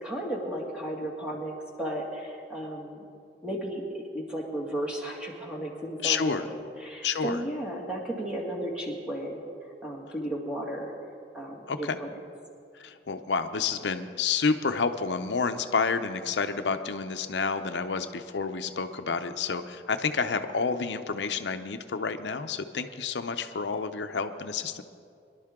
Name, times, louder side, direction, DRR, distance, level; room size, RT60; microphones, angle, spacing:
voice 1, 0.0-3.0 3.4-9.4 9.8-10.9 11.3-12.1, right 1 dB, 5° right, -1 dB, 1.9 m, -34 dB
voice 2, 6.0-6.5 7.0-7.4 11.7-12.0 12.8-24.8, left 5 dB, 85° left, 8 dB, 0.6 m, -29 dB
23.0 x 11.5 x 3.7 m, 2.4 s
head